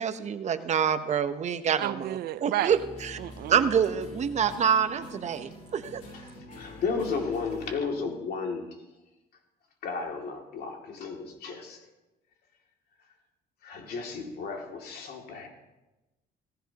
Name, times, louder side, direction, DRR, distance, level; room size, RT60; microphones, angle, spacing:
voice 1, 0.0-3.2 3.5-6.0, right 7 dB, 45° right, 10 dB, 0.9 m, -27 dB
voice 2, 1.8-2.7 3.2-3.6, right 14 dB, 70° right, 16 dB, 0.5 m, -31 dB
sound 1, 2.7-7.8, left 1 dB, 45° left, 2.8 m, -45 dB
voice 3, 6.2-8.6 9.8-11.8 13.6-15.5, left 4 dB, 65° left, 1 dB, 2.6 m, -33 dB
18.0 x 15.0 x 2.9 m, 1.1 s
cardioid pair, 110°, 17 cm